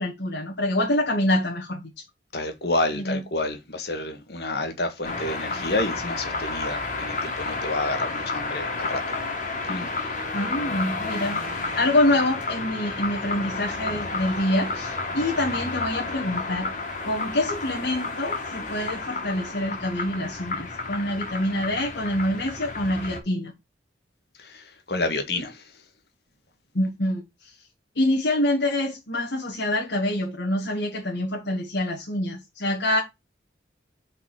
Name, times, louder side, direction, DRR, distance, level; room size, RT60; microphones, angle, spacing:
voice 1, 0.0-2.0 2.9-3.2 10.3-11.4 11.8-16.7 17.0-23.5 26.7-27.5 28.0-33.0, left 1 dB, 90° left, 2.0 m, -26 dB
voice 2, 2.3-9.0 9.7-9.9 24.5-24.6 24.9-25.6, left 2 dB, 65° left, 1.7 m, -29 dB
sound 1, 5.0-23.2, left 3 dB, 45° left, 2.1 m, -31 dB
5.4 x 5.0 x 6.3 m
head